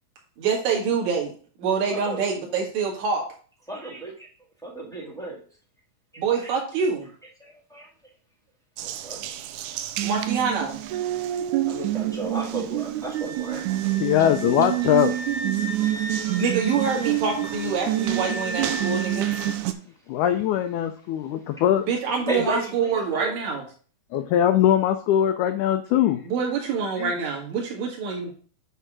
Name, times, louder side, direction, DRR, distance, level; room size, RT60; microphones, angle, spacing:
voice 1, 0.4-1.3 1.6-3.2 6.2-7.1 10.0-10.8 16.3-19.4 21.8-23.6 26.2-28.3, right 5 dB, 60° right, -1 dB, 3.0 m, -26 dB
voice 2, 1.9-2.2 3.7-4.3 4.6-5.4 6.1-6.6 7.4-7.9 8.8-9.3 11.7-13.6 14.2-14.6 19.7-19.8 22.2-23.3 27.6-27.7, right 2 dB, ahead, -4 dB, 0.8 m, -33 dB
Water tap faucet, 8.8-19.7, right 14 dB, 85° right, 1.8 m, -27 dB
Wind instrument woodwind instrument, 13.1-19.5, equal, 30° right, 0.6 m, -36 dB
voice 3, 14.0-15.1 15.5-15.6 19.5-19.6 20.1-21.9 24.1-26.2 27.0-27.1, left 11 dB, 85° left, 7 dB, 1.7 m, -21 dB
8.3 x 3.5 x 6.0 m, 0.43 s
omnidirectional pair, 4.1 m